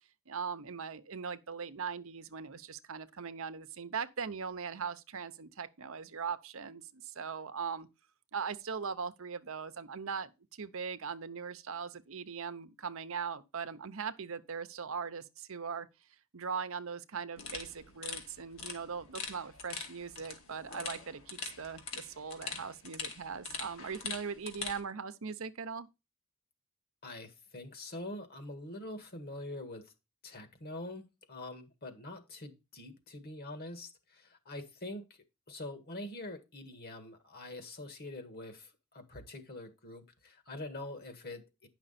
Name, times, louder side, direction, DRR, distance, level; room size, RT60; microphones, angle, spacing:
voice 1, 0.3-7.9 8.3-15.9 16.3-25.9, right 6 dB, 65° right, 0.8 m, -40 dB
sound 1, 17.4-24.8, left 5 dB, 65° left, 2.1 m, -43 dB
voice 2, 27.0-29.9 30.2-31.0 31.3-41.7, left 2 dB, 45° left, 1.8 m, -45 dB
10.0 x 5.9 x 4.2 m
head